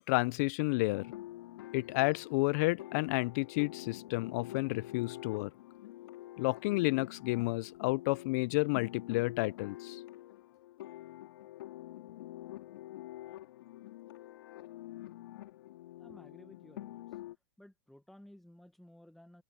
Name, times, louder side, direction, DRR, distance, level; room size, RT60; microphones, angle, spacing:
voice 1, 0.1-1.1 1.7-5.5 6.4-10.0, left 25 dB, 40° left, 0.4 m, -31 dB
sound 1, 0.9-17.3, left 15 dB, 60° left, 3.5 m, -47 dB
voice 2, 16.0-17.0 17.6-19.4, left 1 dB, ahead, 1.4 m, -56 dB
hypercardioid pair, 150°, 14 cm